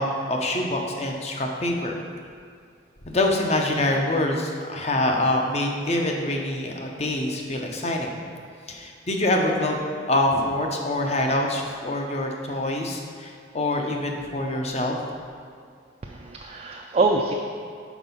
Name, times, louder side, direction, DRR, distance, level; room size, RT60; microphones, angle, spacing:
voice 1, 0.0-2.0 3.0-8.2 8.7-9.8 10.1-15.0, left 1 dB, 35° left, 1 dB, 0.7 m, -25 dB
voice 2, 16.0-17.3, right 3 dB, 35° right, 1 dB, 0.3 m, -24 dB
6.0 x 4.6 x 5.5 m, 2.3 s
head